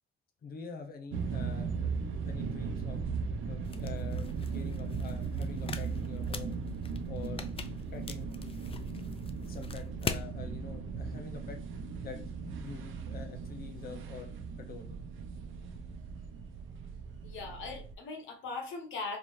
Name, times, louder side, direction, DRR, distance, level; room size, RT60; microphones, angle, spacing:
voice 1, 0.4-2.0 2.2-3.0 3.4-6.6 7.1-7.5 7.9-8.3 9.4-11.6 12.0-14.9, left 5 dB, 50° left, 0.9 m, -46 dB
sound 1, 1.1-17.9, right 5 dB, 85° right, 0.6 m, -37 dB
sound 2, 3.6-10.3, left 5 dB, 30° left, 0.4 m, -43 dB
voice 2, 17.2-19.2, left 3 dB, 80° left, 0.9 m, -39 dB
4.0 x 2.7 x 3.1 m
cardioid pair, 90°, 20 cm